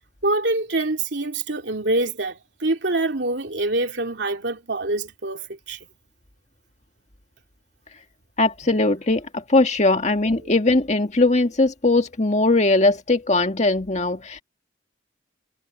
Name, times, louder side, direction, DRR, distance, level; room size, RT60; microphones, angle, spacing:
voice 1, 0.2-5.8, right 2 dB, 75° right, 2.8 m, -25 dB
voice 2, 8.4-14.4, left 2 dB, 40° left, 1.9 m, -20 dB
head